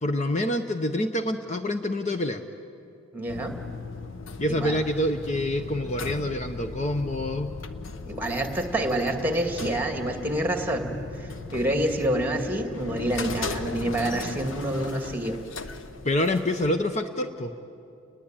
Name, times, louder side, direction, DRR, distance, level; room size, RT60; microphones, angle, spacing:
voice 1, 0.0-2.4 4.4-7.5 16.0-17.5, left 1 dB, 35° left, 7 dB, 0.8 m, -26 dB
voice 2, 3.1-3.6 4.6-4.8 8.1-15.4, right 1 dB, 10° right, 5 dB, 2.1 m, -27 dB
sound 1, 3.3-16.7, left 3 dB, 70° left, 0.9 m, -38 dB
30.0 x 20.5 x 8.9 m, 2.6 s
head